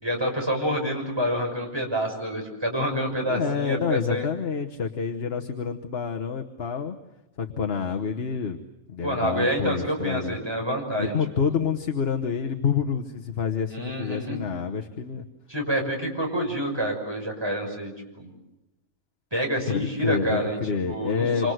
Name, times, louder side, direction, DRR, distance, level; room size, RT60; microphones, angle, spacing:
voice 1, 0.0-4.3 9.0-11.5 13.7-14.4 15.5-17.9 18.2-18.3 19.3-20.6 20.9-21.5, equal, 15° right, 1 dB, 6.2 m, -27 dB
voice 2, 3.3-7.0 7.4-8.6 8.9-10.4 11.0-15.2 19.7-21.5, left 6 dB, 45° left, 5 dB, 1.3 m, -28 dB
27.0 x 27.0 x 7.9 m, 0.99 s
omnidirectional pair, 1.5 m